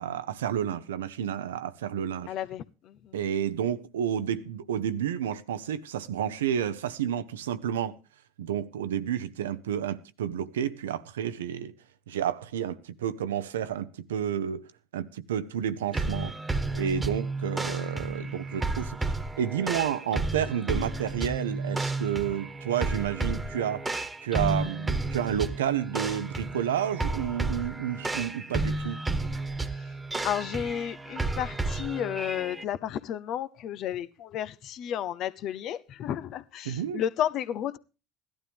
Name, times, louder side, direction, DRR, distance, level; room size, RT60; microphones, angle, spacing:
voice 1, 0.0-2.3 3.1-8.0 8.4-11.7 12.1-16.4 16.7-23.9 24.2-29.0 36.6-37.0, right 9 dB, 90° right, 0.8 m, -30 dB
voice 2, 2.3-3.2 29.7-29.9 30.2-37.8, left 10 dB, 55° left, 0.8 m, -32 dB
sound 1, 15.9-32.6, right 3 dB, 15° right, 1.5 m, -32 dB
16.5 x 12.0 x 3.5 m
hypercardioid pair, 85°, 0 cm